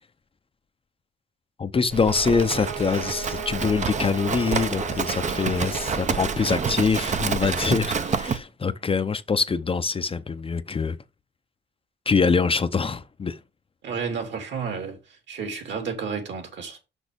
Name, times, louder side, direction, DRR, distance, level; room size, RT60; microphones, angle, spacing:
voice 1, 1.6-11.0 12.1-13.4, left 5 dB, 30° left, 0.7 m, -24 dB
Livestock farm animals working animals, 1.9-8.4, right 5 dB, 35° right, 0.8 m, -28 dB
sound 1, 1.9-6.8, right 5 dB, 80° right, 1.0 m, -37 dB
voice 2, 13.8-16.8, right 5 dB, 65° right, 3.5 m, -32 dB
6.3 x 6.1 x 5.2 m
cardioid pair, 90°, 20 cm